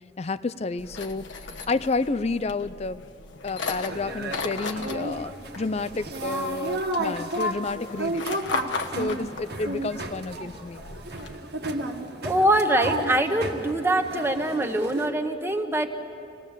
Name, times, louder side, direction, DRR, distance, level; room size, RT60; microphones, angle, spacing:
voice 1, 0.2-1.3 1.7-3.0 3.4-8.2 9.0-10.8, left 3 dB, 35° left, 15 dB, 0.5 m, -30 dB
sound 1, 0.8-11.4, left 4 dB, 90° left, 1.3 m, -37 dB
sound 2, 3.9-15.1, right 1 dB, 60° right, 1.6 m, -33 dB
voice 2, 12.2-15.9, right 1 dB, 15° right, 5 dB, 1.2 m, -23 dB
26.0 x 18.5 x 7.3 m, 2.6 s
head